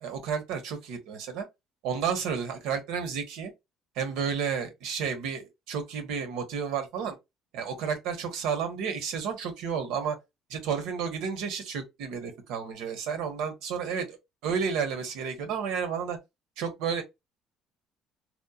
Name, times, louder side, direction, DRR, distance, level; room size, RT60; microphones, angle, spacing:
voice 1, 0.0-1.5 1.8-3.5 4.0-7.2 7.5-10.2 10.5-16.2 16.6-17.0, right 6 dB, 85° right, 0.9 m, -31 dB
2.9 x 2.1 x 2.3 m
cardioid pair, 115°, 0 cm